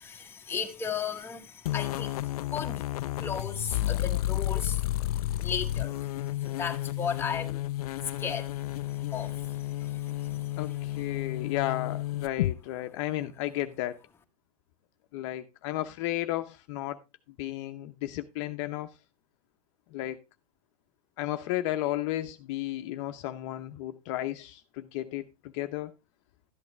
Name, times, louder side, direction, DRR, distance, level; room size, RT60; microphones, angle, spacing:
voice 1, 0.0-2.8 3.2-4.8 5.4-6.0 6.4-7.6 8.2-10.5, left 6 dB, 10° left, 1.3 m, -36 dB
sound 1, 1.7-12.5, left 15 dB, 70° left, 0.4 m, -32 dB
voice 2, 10.6-14.0 15.1-17.0 17.4-18.9 19.9-20.2 21.2-25.9, left 14 dB, 50° left, 0.8 m, -33 dB
12.5 x 8.4 x 3.3 m
hypercardioid pair, 135°, 20 cm